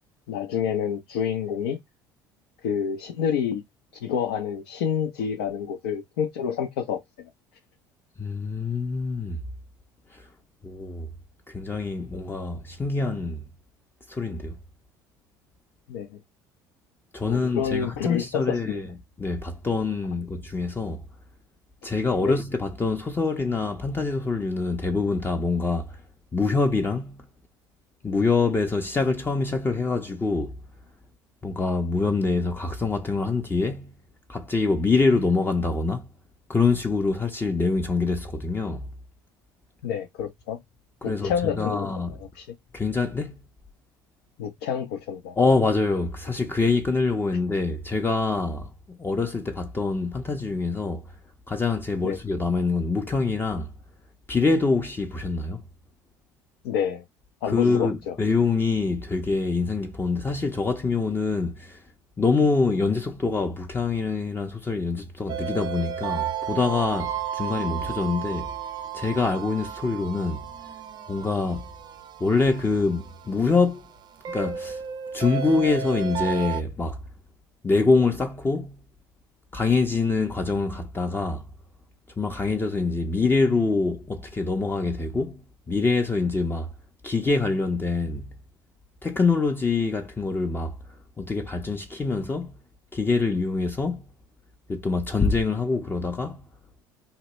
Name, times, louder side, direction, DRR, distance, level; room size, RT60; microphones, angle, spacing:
voice 1, 0.3-1.8 2.6-3.6 4.0-7.0 15.9-16.2 17.3-18.8 22.2-22.4 39.8-40.6 41.0-41.9 42.2-42.5 44.4-45.4 52.0-52.2 56.6-57.0 57.4-58.1, left 8 dB, 75° left, 0.5 m, -28 dB
voice 2, 8.2-9.4 10.1-10.3 10.6-11.1 11.5-13.5 14.1-14.6 17.1-18.9 19.2-21.0 21.8-26.0 26.3-27.2 28.0-30.6 31.4-33.9 34.3-36.1 36.5-38.9 41.0-42.2 42.7-43.4 45.4-51.1 51.5-53.7 54.3-55.6 57.4-61.8 62.2-68.5 68.9-70.5 71.1-71.6 72.2-73.8 74.3-74.8 75.1-77.0 77.6-78.8 79.5-81.5 82.2-86.7 87.0-88.3 89.0-90.8 91.2-92.5 92.9-94.0 94.7-96.4, left 4 dB, 20° left, 0.5 m, -25 dB
sound 1, 65.3-76.6, right 9 dB, 45° right, 0.5 m, -34 dB
2.8 x 2.1 x 3.0 m
hypercardioid pair, 65°, 11 cm